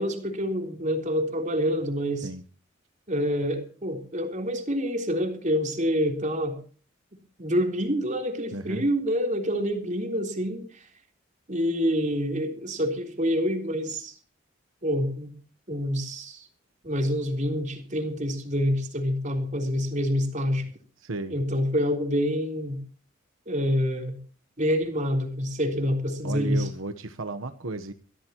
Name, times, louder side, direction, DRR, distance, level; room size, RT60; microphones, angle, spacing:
voice 1, 0.0-2.3 3.1-6.6 7.4-10.9 11.5-14.1 14.8-15.3 15.7-16.5 16.8-20.7 21.3-22.8 23.5-24.2 24.6-26.7, equal, 35° right, 4 dB, 3.6 m, -27 dB
voice 2, 8.5-8.8 21.0-21.4 26.2-27.9, right 2 dB, 80° right, 9 dB, 1.1 m, -34 dB
23.5 x 15.5 x 3.0 m, 0.41 s
head